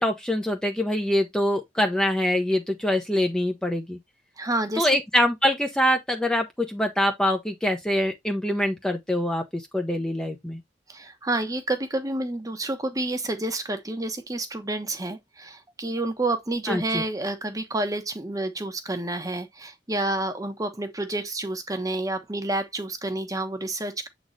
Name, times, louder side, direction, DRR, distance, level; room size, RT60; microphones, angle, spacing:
voice 1, 0.0-4.0 4.8-10.6 16.7-17.0, left 1 dB, 5° left, 0.8 m, -24 dB
voice 2, 4.4-4.9 10.9-24.1, right 2 dB, 20° right, 1.1 m, -29 dB
7.7 x 4.1 x 3.2 m
head